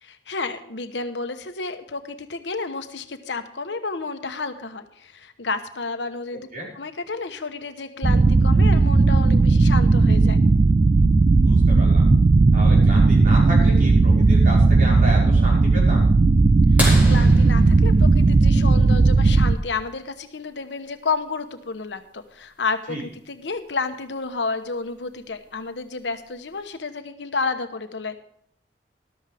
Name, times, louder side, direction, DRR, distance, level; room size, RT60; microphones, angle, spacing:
voice 1, 0.0-6.5 6.7-10.4 17.1-28.1, left 4 dB, 90° left, 8 dB, 1.1 m, -31 dB
sound 1, 8.0-19.6, right 3 dB, 30° right, 0.4 m, -16 dB
voice 2, 11.4-12.0 12.5-16.0 22.9-23.0, right 1 dB, 50° right, -4 dB, 5.4 m, -32 dB
sound 2, 16.8-19.2 21.2-21.3 23.5-23.6 25.3-25.6 26.4-26.5, left 1 dB, 10° right, 4.0 m, -30 dB
13.5 x 12.5 x 3.5 m, 0.67 s
head